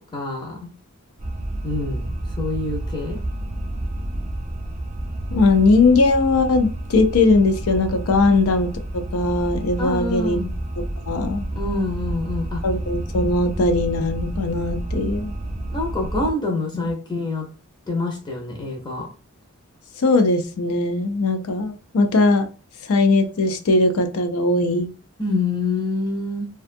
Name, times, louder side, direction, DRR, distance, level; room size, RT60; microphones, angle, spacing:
voice 1, 0.1-0.7 1.6-3.2 9.8-10.5 11.5-12.6 15.7-17.5 17.9-19.1 25.2-26.5, left 2 dB, 20° left, 0 dB, 0.7 m, -26 dB
sound 1, 1.2-16.3, right 1 dB, 30° right, 0.5 m, -29 dB
voice 2, 5.3-10.4 11.1-11.5 12.6-15.3 16.7-16.9 20.0-22.5 22.8-24.9, left 3 dB, 80° left, 7 dB, 0.5 m, -19 dB
2.5 x 2.3 x 2.5 m, 0.35 s
head